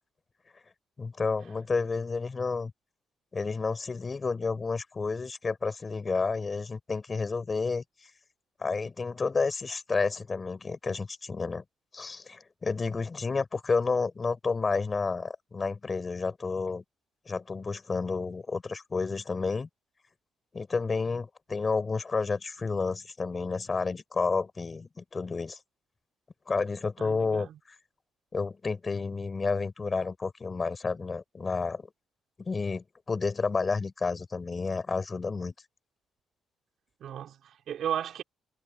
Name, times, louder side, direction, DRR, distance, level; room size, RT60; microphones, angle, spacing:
voice 1, 1.0-2.7 3.3-8.1 8.6-11.6 11.9-16.8 17.3-19.7 20.5-25.6 26.5-27.8 28.3-31.9 32.4-35.5, left 4 dB, 30° left, 4.0 m, -30 dB
voice 2, 27.0-27.6 37.0-38.2, right 10 dB, 70° right, 4.4 m, -35 dB
cardioid pair, 90°, 0 cm